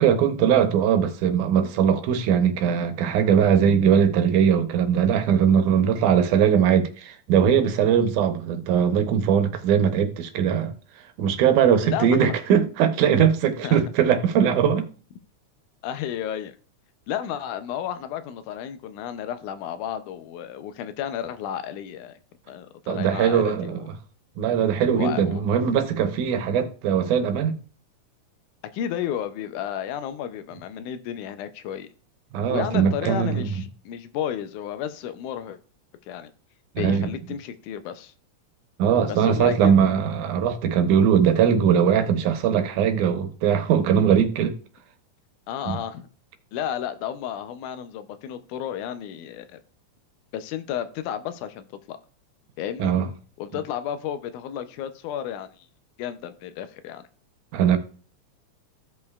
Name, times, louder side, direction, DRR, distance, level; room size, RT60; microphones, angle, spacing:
voice 1, 0.0-10.7 11.2-14.8 22.9-23.8 24.4-27.6 32.3-33.5 36.8-37.1 38.8-44.5 45.7-45.8 52.8-53.1 57.5-57.8, right 8 dB, 85° right, 2.3 m, -20 dB
voice 2, 11.8-12.4 13.6-13.9 15.8-16.6 17.1-22.2 22.5-23.9 24.9-25.4 28.7-31.9 32.5-35.6 36.1-36.3 36.8-38.1 39.1-39.7 45.5-46.1 46.5-49.6 50.3-52.0 52.6-52.9 53.4-55.5 56.0-57.0, left 10 dB, 85° left, 2.1 m, -32 dB
15.5 x 5.3 x 2.3 m
omnidirectional pair, 3.5 m